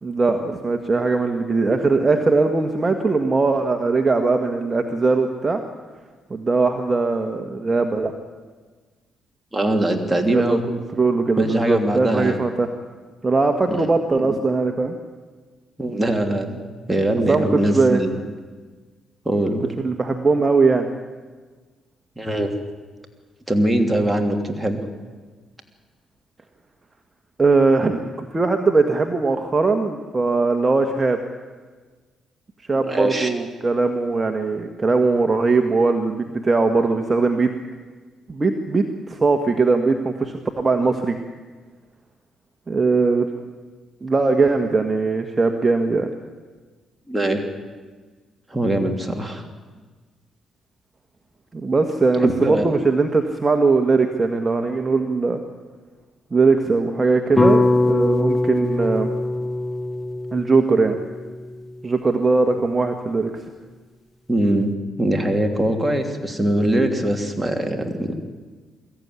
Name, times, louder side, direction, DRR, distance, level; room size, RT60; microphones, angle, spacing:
voice 1, 0.0-5.6 6.3-8.1 10.3-12.7 13.2-15.0 17.3-18.0 19.8-20.9 27.4-31.2 32.7-37.5 38.3-41.2 42.7-43.3 44.0-46.1 51.5-55.4 56.3-59.1 60.3-61.0 61.8-63.4, right 3 dB, 25° right, 4 dB, 1.6 m, -20 dB
voice 2, 9.5-10.6 11.4-12.4 13.7-13.8 14.1-14.4 15.8-16.6 16.9-18.1 19.2-19.7 22.2-22.5 23.5-24.8 32.7-33.3 47.1-47.4 48.5-49.4 52.2-52.7 64.3-64.7 65.0-68.1, right 1 dB, 5° right, 3 dB, 3.1 m, -22 dB
sound 1, 57.4-61.6, left 2 dB, 15° left, 0.9 m, -21 dB
22.5 x 14.5 x 9.7 m, 1.4 s
cardioid pair, 90°, 0 cm